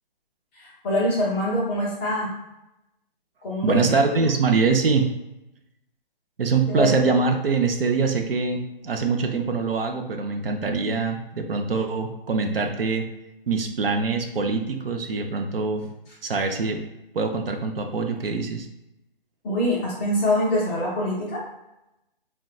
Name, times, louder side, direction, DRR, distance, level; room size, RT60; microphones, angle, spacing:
voice 1, 0.5-2.3 3.4-4.2 6.7-7.0 19.4-21.4, left 1 dB, 15° left, -6 dB, 0.5 m, -24 dB
voice 2, 3.6-5.1 6.4-13.1 13.5-15.8 16.2-16.8 17.1-18.7, right 4 dB, 75° right, 4 dB, 0.6 m, -23 dB
3.7 x 2.2 x 2.4 m, 0.91 s
figure-of-eight pair, 140°, 29 cm